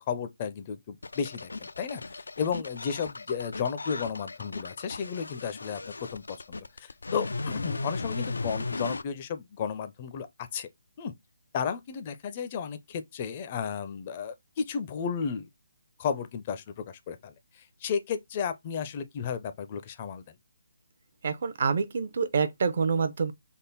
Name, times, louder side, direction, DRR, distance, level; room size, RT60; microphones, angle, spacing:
voice 1, 0.0-10.7 11.0-11.1 11.5-15.5 16.0-20.4, left 6 dB, 30° left, 0.5 m, -33 dB
sound 1, 1.0-9.0, left 3 dB, 90° left, 0.3 m, -36 dB
voice 2, 21.2-23.3, right 5 dB, 50° right, 0.6 m, -27 dB
3.6 x 2.1 x 4.0 m
hypercardioid pair, 160°, 0 cm